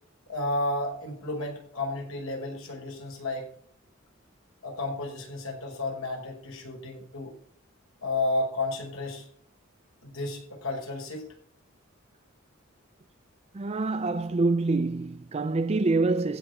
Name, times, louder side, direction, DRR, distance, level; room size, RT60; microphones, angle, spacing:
voice 1, 0.3-3.5 4.6-7.4 8.0-9.3 10.0-11.3, left 2 dB, 85° left, 5.7 m, -32 dB
voice 2, 13.5-16.4, right 3 dB, 30° right, 0.5 m, -26 dB
15.5 x 6.0 x 7.1 m
head